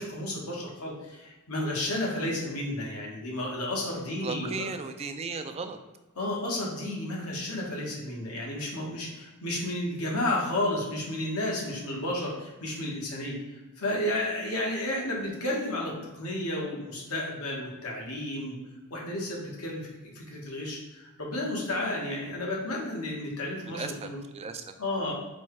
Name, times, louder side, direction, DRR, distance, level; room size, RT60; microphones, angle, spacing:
voice 1, 0.0-4.7 6.2-18.6 18.9-24.2 24.8-25.1, left 1 dB, 75° left, -2 dB, 1.2 m, -32 dB
voice 2, 4.2-5.8 23.6-24.6, right 4 dB, 30° right, 7 dB, 0.3 m, -36 dB
4.2 x 2.3 x 4.7 m, 1.1 s
head